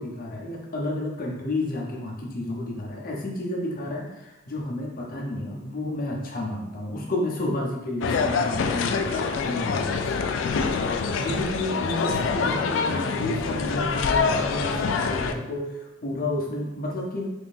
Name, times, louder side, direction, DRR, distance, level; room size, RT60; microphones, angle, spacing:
voice 1, 0.0-10.0 11.2-17.3, left 1 dB, 50° left, -2 dB, 0.8 m, -31 dB
sound 1, 8.0-15.3, left 5 dB, 85° left, 0.3 m, -25 dB
3.6 x 3.3 x 2.6 m, 0.98 s
head